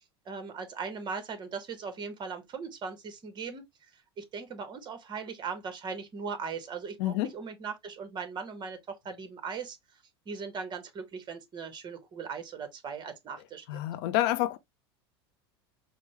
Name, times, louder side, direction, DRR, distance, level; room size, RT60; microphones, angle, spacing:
voice 1, 0.2-3.6 4.2-9.8 10.2-13.8, right 5 dB, 35° right, 1.1 m, -39 dB
voice 2, 7.0-7.3 13.7-14.6, left 14 dB, 65° left, 0.5 m, -28 dB
4.9 x 2.1 x 3.0 m
hypercardioid pair, 100°, 13 cm